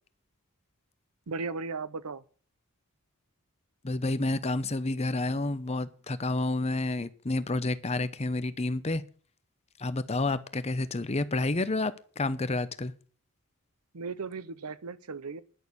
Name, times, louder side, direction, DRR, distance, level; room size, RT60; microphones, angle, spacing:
voice 1, 1.3-2.2 13.9-15.4, right 4 dB, 80° right, 0.8 m, -36 dB
voice 2, 3.8-9.0 9.8-12.9, left 2 dB, 30° left, 0.7 m, -29 dB
11.0 x 6.3 x 8.4 m
head